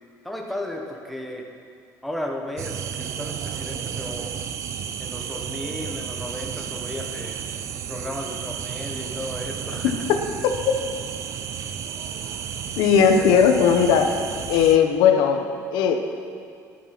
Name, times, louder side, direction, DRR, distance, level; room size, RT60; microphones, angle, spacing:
voice 1, 0.2-1.5 2.0-4.3 5.0-7.4 7.9-9.9 12.9-13.3, left 1 dB, ahead, 0 dB, 1.2 m, -34 dB
sound 1, 2.6-14.8, right 8 dB, 45° right, 0.7 m, -32 dB
voice 2, 9.8-10.2 12.8-14.2 14.5-16.1, left 7 dB, 75° left, 5 dB, 1.1 m, -18 dB
13.0 x 11.0 x 6.0 m, 2.3 s
cardioid pair, 160°, 7 cm